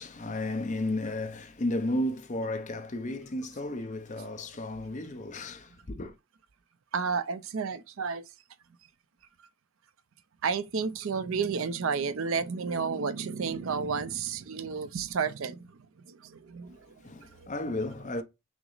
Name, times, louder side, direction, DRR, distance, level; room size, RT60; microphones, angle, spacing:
voice 1, 0.0-6.1 17.0-18.2, left 1 dB, 35° left, 0.6 m, -33 dB
voice 2, 6.9-8.3 10.4-15.8 16.1-16.9, right 5 dB, 60° right, 0.5 m, -31 dB
5.9 x 2.0 x 3.9 m
head